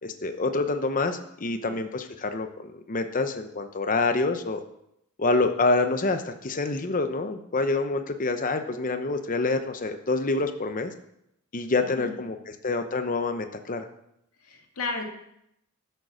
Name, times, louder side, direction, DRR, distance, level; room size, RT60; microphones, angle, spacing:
voice 1, 0.0-4.6 5.2-10.9 11.5-13.9, left 3 dB, 40° left, 7 dB, 0.8 m, -27 dB
voice 2, 1.4-1.8 12.0-12.3 14.4-15.0, left 3 dB, 85° left, 2 dB, 2.0 m, -34 dB
11.5 x 6.8 x 6.3 m, 0.78 s
head